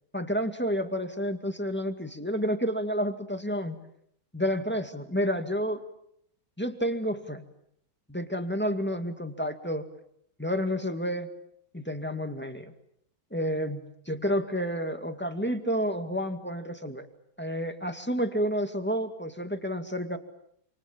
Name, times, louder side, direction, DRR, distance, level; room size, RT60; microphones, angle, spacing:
voice 1, 0.1-3.8 4.3-5.8 6.6-7.5 8.1-9.9 10.4-11.3 11.7-12.7 13.3-17.1 17.4-20.2, equal, 5° left, 6 dB, 2.0 m, -30 dB
28.0 x 27.5 x 7.4 m, 0.74 s
omnidirectional pair, 2.3 m